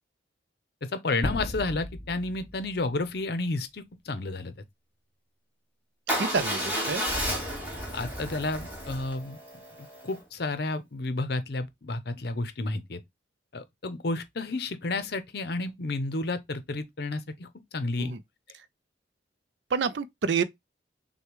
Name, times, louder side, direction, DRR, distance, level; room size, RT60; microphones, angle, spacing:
voice 1, 0.8-4.5 7.9-9.4 10.0-13.0 13.5-18.1, left 2 dB, 55° left, 0.6 m, -31 dB
sound 1, 1.2-3.2, equal, 10° left, 0.6 m, -35 dB
Motorcycle / Engine starting / Idling, 6.1-10.2, equal, 10° right, 1.3 m, -32 dB
voice 2, 6.1-7.0 18.0-18.2 19.7-20.4, right 5 dB, 65° right, 0.5 m, -28 dB
6.5 x 2.2 x 3.0 m
head